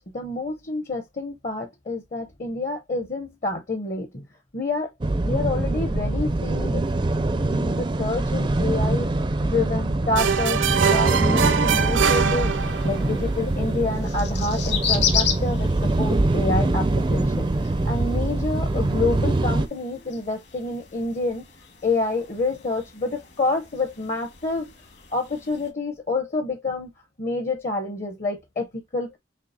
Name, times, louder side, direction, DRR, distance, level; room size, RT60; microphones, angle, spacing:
voice 1, 0.0-4.3 4.5-4.9 5.2-6.9 7.4-9.1 9.4-12.5 12.8-17.5 17.8-21.4 21.8-24.7 25.1-26.9 27.2-29.2, left 3 dB, 40° left, 0.7 m, -28 dB
sound 1, 5.0-19.7, right 2 dB, 25° right, 0.4 m, -24 dB
sound 2, 10.2-13.1, right 6 dB, 80° right, 0.6 m, -22 dB
sound 3, 11.4-25.7, left 7 dB, 60° left, 1.6 m, -34 dB
6.8 x 2.7 x 2.7 m
head